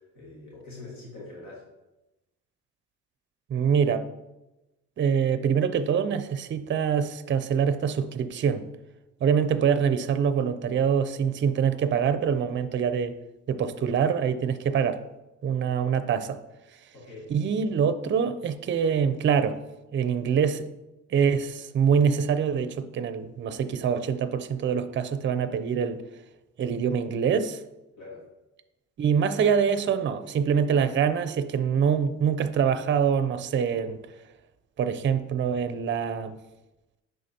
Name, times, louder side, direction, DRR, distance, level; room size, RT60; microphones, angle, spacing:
voice 1, 0.0-1.6 16.9-17.3 28.0-28.2, left 2 dB, 75° left, 2.0 m, -43 dB
voice 2, 3.5-4.1 5.0-8.6 9.2-13.2 13.5-15.0 15.4-16.4 17.3-19.6 19.9-20.7 21.1-26.0 26.6-27.6 29.0-34.0 34.8-36.4, right 7 dB, 40° right, 0.5 m, -25 dB
10.0 x 3.8 x 2.8 m
cardioid pair, 90°, 30 cm